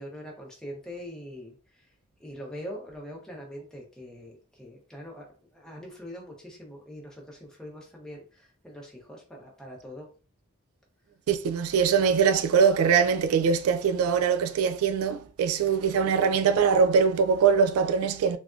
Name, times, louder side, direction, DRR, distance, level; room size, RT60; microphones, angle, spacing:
voice 1, 0.0-1.9 2.2-10.1, equal, 5° left, 0.8 m, -43 dB
voice 2, 11.3-18.4, right 6 dB, 75° right, 0.3 m, -22 dB
3.4 x 2.5 x 2.3 m
head